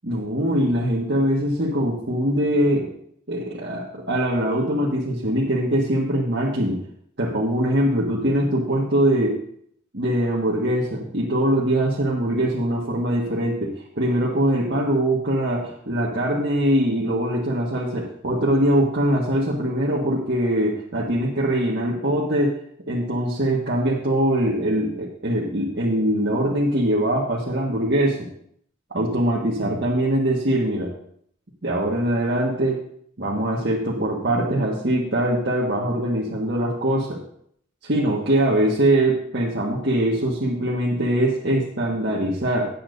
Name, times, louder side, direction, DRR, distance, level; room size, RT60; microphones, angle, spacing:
voice 1, 0.0-2.9 3.3-6.8 7.2-9.3 9.9-22.5 22.9-28.3 28.9-30.9 31.6-32.8 33.2-37.2 37.8-42.7, right 1 dB, 55° right, -5 dB, 1.7 m, -22 dB
17.0 x 8.8 x 2.7 m, 0.66 s
head